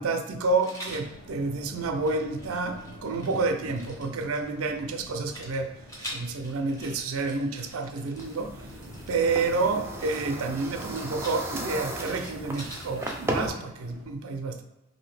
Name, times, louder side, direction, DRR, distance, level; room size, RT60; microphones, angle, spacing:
voice 1, 0.0-5.8 6.1-8.7 9.1-14.6, right 3 dB, 85° right, 0.4 m, -29 dB
Rattle, 0.6-1.1 1.7-4.4 5.3-9.4 10.0-13.4, equal, 15° left, 0.8 m, -44 dB
sound 1, 0.8-14.0, left 1 dB, 60° left, 1.1 m, -47 dB
sound 2, 8.2-13.5, right 1 dB, 10° right, 0.3 m, -35 dB
2.7 x 2.7 x 3.2 m
head